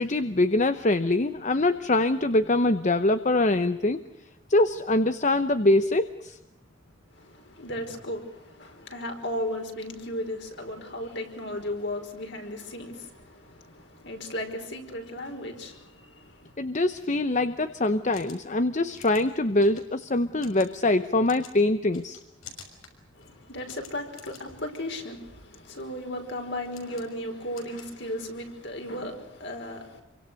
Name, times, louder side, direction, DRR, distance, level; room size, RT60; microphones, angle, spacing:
voice 1, 0.0-4.0 4.5-6.4 16.6-22.2, left 2 dB, 35° left, 0.8 m, -24 dB
voice 2, 7.1-16.6 23.1-30.0, left 1 dB, 55° left, 5.2 m, -36 dB
sound 1, 18.0-28.5, left 6 dB, 80° left, 6.2 m, -52 dB
28.0 x 24.0 x 6.5 m
head